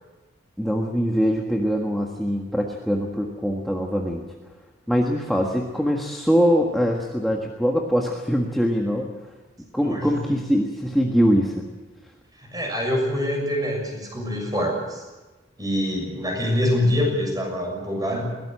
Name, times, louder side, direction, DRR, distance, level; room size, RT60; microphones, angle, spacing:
voice 1, 0.6-4.2 4.9-9.1 9.7-11.6, equal, ahead, 0 dB, 1.6 m, -22 dB
voice 2, 9.8-10.3 12.4-15.0 15.6-18.2, left 1 dB, 20° right, 1 dB, 6.6 m, -25 dB
21.5 x 18.0 x 7.8 m, 1.2 s
head